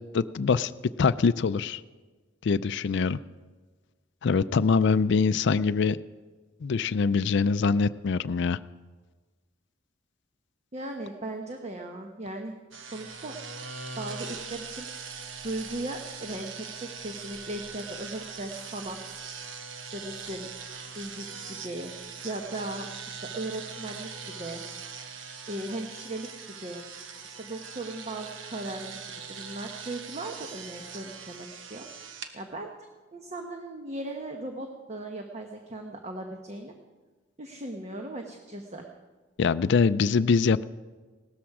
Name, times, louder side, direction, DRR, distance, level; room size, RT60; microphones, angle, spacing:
voice 1, 0.1-0.7 1.0-1.8 2.4-3.2 4.2-6.0 6.6-8.6 39.4-40.6, left 5 dB, 65° left, 14 dB, 0.4 m, -23 dB
voice 2, 10.7-12.5 12.9-13.4 14.0-15.1 15.4-19.5 19.8-20.5 20.9-24.6 25.5-26.8 27.3-32.7 33.1-36.7 37.4-38.9, right 1 dB, 35° right, 3 dB, 1.1 m, -38 dB
sound 1, 12.7-32.3, right 5 dB, 80° right, 1.1 m, -41 dB
17.5 x 13.0 x 4.8 m, 1.3 s
head